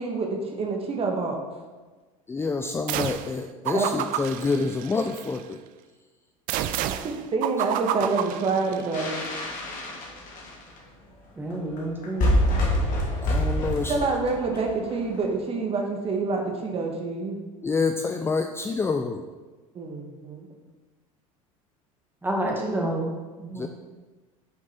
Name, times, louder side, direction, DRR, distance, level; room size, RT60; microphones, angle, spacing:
voice 1, 0.0-1.4 3.7-3.9 6.9-9.2 13.9-17.4 19.7-20.5, right 4 dB, 35° right, 2 dB, 1.3 m, -27 dB
voice 2, 2.3-5.6 13.2-14.1 17.6-19.2 23.5-23.7, left 4 dB, 15° left, 5 dB, 0.4 m, -27 dB
sound 1, 2.9-3.4 3.7-5.4 6.5-9.1, right 11 dB, 50° right, 0.4 m, -30 dB
sound 2, 8.9-10.8 11.5-11.6 11.8-11.9 12.0-15.2, equal, 50° left, 2.1 m, -26 dB
voice 3, 11.4-12.3 22.2-23.1 23.4-23.7, right 1 dB, 10° right, -2 dB, 1.8 m, -28 dB
6.6 x 5.2 x 4.2 m, 1.3 s
hypercardioid pair, 85°, 18 cm